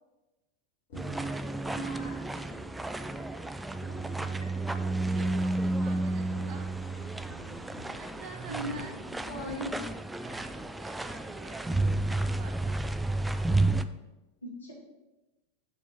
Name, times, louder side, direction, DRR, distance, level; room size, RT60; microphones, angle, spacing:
sound 1, 0.9-9.8, left 1 dB, 65° left, 2.2 m, -51 dB
sound 2, 0.9-13.8, right 2 dB, 5° right, 0.4 m, -31 dB
voice 1, 1.7-2.4 8.5-8.7 9.3-9.7 14.4-14.7, right 1 dB, 80° left, -2 dB, 2.1 m, -39 dB
voice 2, 5.1-6.7 7.9-9.0 9.4-9.8 10.2-13.2, right 4 dB, 45° right, 4 dB, 1.3 m, -49 dB
5.4 x 4.5 x 5.5 m, 1.0 s
figure-of-eight pair, 90°, 0 cm